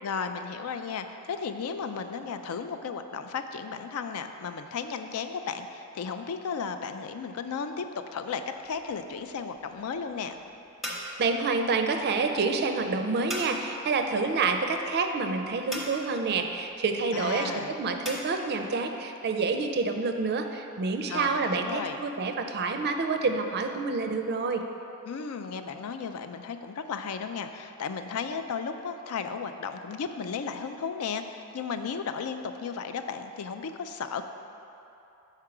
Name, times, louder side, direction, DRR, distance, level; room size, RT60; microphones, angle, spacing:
voice 1, 0.0-10.4 17.1-17.8 21.1-22.0 25.1-34.2, left 6 dB, 75° left, 8 dB, 0.4 m, -34 dB
sound 1, 8.6-18.2, equal, ahead, 0.8 m, -42 dB
voice 2, 11.2-17.5 17.8-24.6, right 4 dB, 50° right, 6 dB, 0.4 m, -28 dB
5.8 x 4.5 x 4.9 m, 2.8 s
head